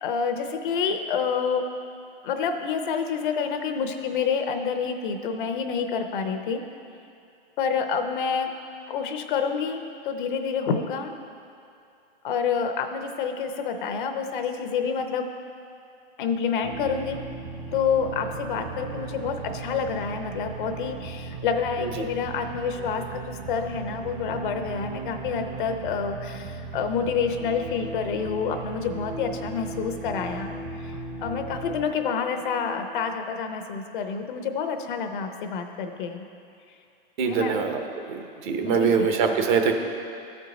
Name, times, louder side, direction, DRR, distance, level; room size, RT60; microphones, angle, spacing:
voice 1, 0.0-1.6 2.2-6.6 7.6-8.5 8.9-11.1 12.2-15.2 16.2-17.2 17.7-30.5 30.8-30.9 31.2-36.3 37.2-37.6 38.7-39.1, left 6 dB, 60° left, 6 dB, 0.8 m, -28 dB
sound 1, 16.6-33.1, right 4 dB, 35° right, 0.7 m, -37 dB
voice 2, 37.2-37.8 38.1-39.7, right 6 dB, 55° right, 4 dB, 1.0 m, -23 dB
13.0 x 4.6 x 4.0 m, 2.5 s
hypercardioid pair, 120°, 29 cm